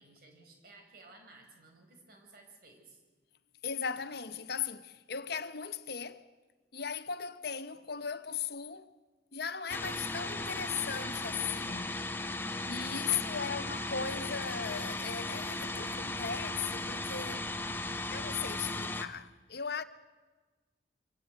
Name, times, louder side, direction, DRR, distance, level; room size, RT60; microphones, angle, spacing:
voice 1, 0.0-3.0, right 3 dB, 50° right, 4.9 m, -57 dB
voice 2, 3.6-6.3 6.7-8.9 9.3-12.0 12.7-17.5 18.1-19.8, left 7 dB, 55° left, 0.9 m, -37 dB
sound 1, 9.7-19.0, left 2 dB, 10° left, 0.9 m, -36 dB
25.0 x 17.0 x 8.2 m
head